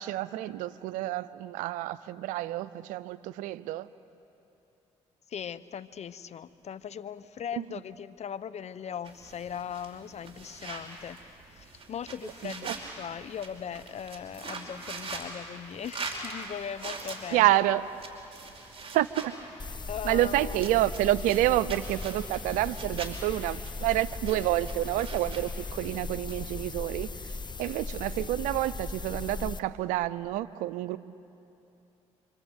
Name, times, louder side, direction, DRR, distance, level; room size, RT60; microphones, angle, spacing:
voice 1, 0.0-3.9 12.4-12.7 17.3-17.9 18.9-19.4 20.0-27.1 27.6-31.0, right 15 dB, 90° right, 17 dB, 0.6 m, -28 dB
voice 2, 5.3-17.6 19.9-20.7, left 8 dB, 60° left, 15 dB, 0.9 m, -39 dB
sound 1, 9.0-26.4, right 3 dB, 45° right, 5.0 m, -43 dB
sound 2, 19.6-29.6, left 3 dB, 35° left, 1.1 m, -38 dB
27.5 x 25.5 x 8.3 m, 2.8 s
supercardioid pair, 55°, 13 cm